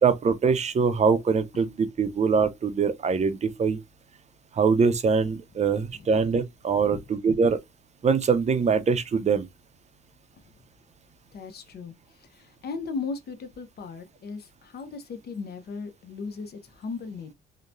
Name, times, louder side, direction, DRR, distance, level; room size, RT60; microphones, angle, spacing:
voice 1, 0.0-3.8 4.6-7.6 8.0-9.5, right 5 dB, 35° right, 0.5 m, -23 dB
voice 2, 11.3-17.3, left 4 dB, 55° left, 0.7 m, -37 dB
2.9 x 2.1 x 2.5 m
cardioid pair, 90°, 20 cm